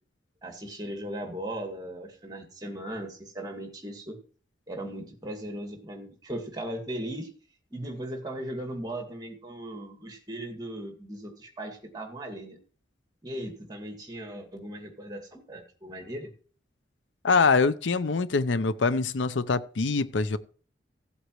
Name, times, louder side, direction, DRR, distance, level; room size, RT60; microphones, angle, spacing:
voice 1, 0.4-4.2 4.7-7.3 7.7-12.6 13.2-16.3, right 1 dB, 20° right, 2.1 m, -38 dB
voice 2, 17.2-20.4, left 4 dB, 85° left, 0.7 m, -24 dB
16.5 x 8.0 x 3.1 m
head